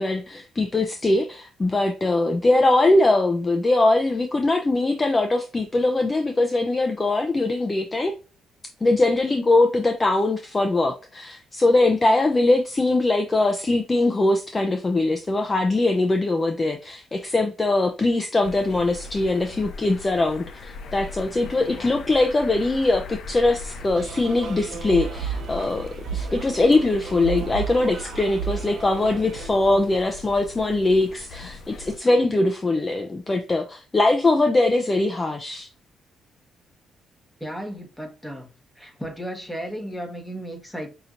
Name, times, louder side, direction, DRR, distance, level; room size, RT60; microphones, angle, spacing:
voice 1, 0.0-8.1 8.8-35.7, left 2 dB, 25° left, 0.5 m, -21 dB
sound 1, 18.4-32.0, left 4 dB, 60° left, 0.7 m, -40 dB
sound 2, 23.9-29.5, right 8 dB, 60° right, 0.9 m, -33 dB
voice 2, 37.4-38.5 38.8-40.9, equal, 5° left, 1.4 m, -34 dB
5.5 x 2.8 x 2.5 m
cardioid pair, 90°, 0 cm